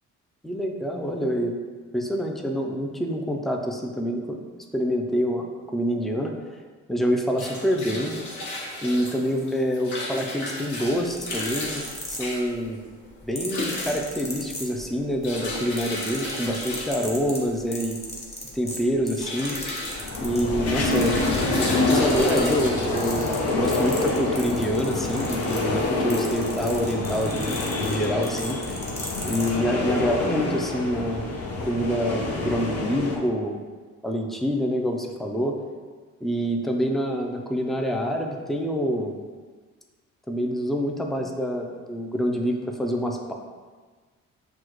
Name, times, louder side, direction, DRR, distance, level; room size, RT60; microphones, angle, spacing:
voice 1, 0.4-1.6 1.9-4.4 4.7-6.3 6.9-8.2 8.8-12.8 13.2-18.0 18.5-19.6 20.2-21.3 21.6-28.8 29.2-31.3 31.7-33.5 34.0-35.6 36.2-39.2 40.3-43.3, equal, ahead, 2 dB, 0.4 m, -26 dB
sound 1, 7.1-25.6, left 2 dB, 75° left, 1.1 m, -35 dB
sound 2, 10.9-12.7 13.4-15.1 15.4-20.5 20.9-21.9 22.1-29.5 30.3-30.4, left 1 dB, 20° left, 1.0 m, -37 dB
sound 3, 19.8-33.2, left 2 dB, 55° left, 0.8 m, -27 dB
6.1 x 2.3 x 3.0 m, 1.5 s
cardioid pair, 90°, 30 cm